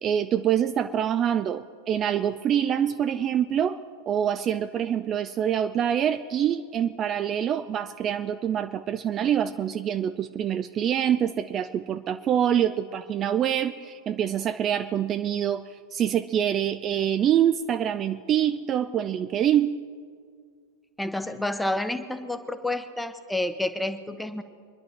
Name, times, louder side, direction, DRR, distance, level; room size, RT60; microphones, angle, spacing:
voice 1, 0.0-3.8 4.1-19.8, right 9 dB, 30° right, 11 dB, 0.4 m, -25 dB
voice 2, 21.0-24.4, left 1 dB, 5° left, 9 dB, 0.8 m, -29 dB
25.0 x 11.0 x 4.3 m, 2.1 s
figure-of-eight pair, 90°, 0 cm